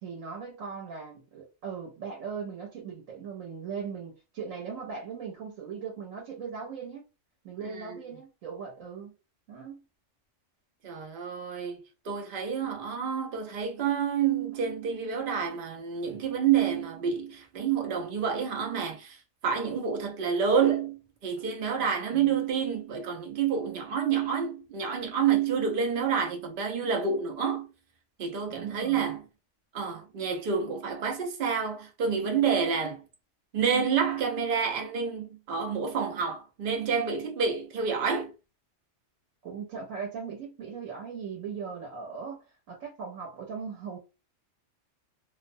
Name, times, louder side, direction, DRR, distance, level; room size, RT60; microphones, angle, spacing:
voice 1, 0.0-7.1 7.4-9.1 9.5-9.8 22.1-22.3 28.5-29.1 39.4-44.0, right 6 dB, 90° right, 1.1 m, -39 dB
voice 2, 7.6-8.0 10.8-27.7 28.2-29.3 29.7-33.0 33.5-38.3, right 6 dB, 55° right, 0.7 m, -28 dB
2.5 x 2.1 x 2.6 m
omnidirectional pair, 1.3 m